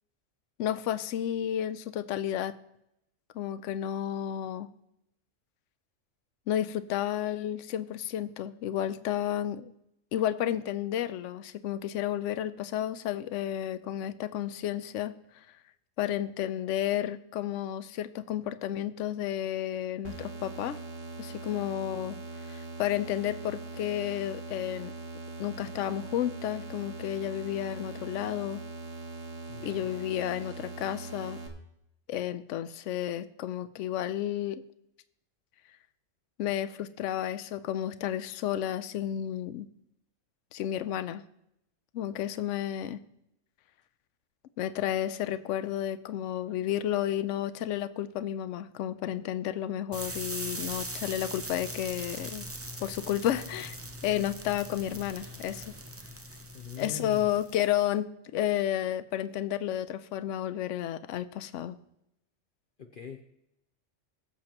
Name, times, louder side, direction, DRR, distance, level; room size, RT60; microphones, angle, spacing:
voice 1, 0.6-2.5 3.3-4.7 6.5-9.7 10.1-15.1 16.0-20.8 21.2-22.2 22.5-24.9 25.4-28.6 29.6-31.4 32.1-34.6 36.4-39.7 40.5-41.2 41.9-43.0 44.6-52.5 52.8-53.7 54.0-55.7 56.8-61.7, left 11 dB, 75° left, 13 dB, 0.9 m, -32 dB
sound 1, 20.0-31.5, right 3 dB, 70° right, 1.5 m, -41 dB
voice 2, 29.5-29.9 56.5-57.4 62.8-63.2, left 6 dB, 50° left, 4 dB, 0.8 m, -42 dB
sound 2, 49.9-57.8, right 1 dB, 20° right, 0.4 m, -41 dB
21.5 x 7.2 x 3.0 m, 0.81 s
omnidirectional pair, 1.4 m